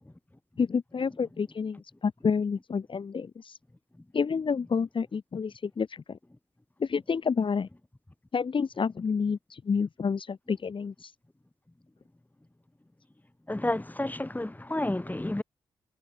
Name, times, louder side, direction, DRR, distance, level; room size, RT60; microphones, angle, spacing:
voice 1, 0.6-3.6 4.1-6.2 6.8-7.7 8.3-11.1, left 5 dB, 50° left, 2.7 m, -29 dB
voice 2, 13.5-15.4, left 1 dB, 15° left, 7.9 m, -30 dB
hypercardioid pair, 40°, 11 cm